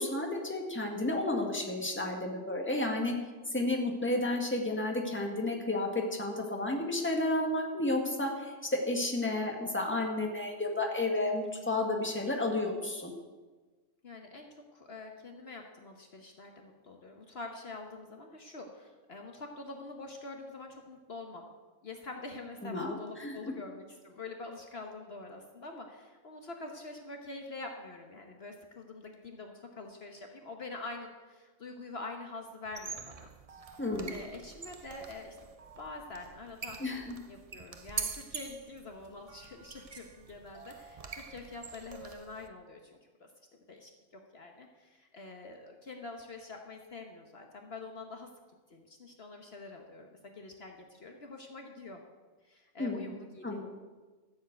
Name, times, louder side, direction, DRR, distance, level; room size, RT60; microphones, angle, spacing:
voice 1, 0.0-3.1 3.5-13.1 22.6-23.5 33.8-34.1 36.8-37.1 52.8-53.1 53.4-53.6, left 2 dB, 10° left, 1 dB, 1.7 m, -32 dB
voice 2, 14.0-21.5 21.8-33.3 33.7-33.8 34.1-35.4 35.8-36.8 37.3-43.3 43.7-48.3 48.7-52.0 52.4-53.6, left 3 dB, 55° left, 3 dB, 1.4 m, -46 dB
sound 1, 32.6-42.5, right 5 dB, 35° right, 0.7 m, -44 dB
14.0 x 7.4 x 8.1 m, 1.3 s
omnidirectional pair, 1.3 m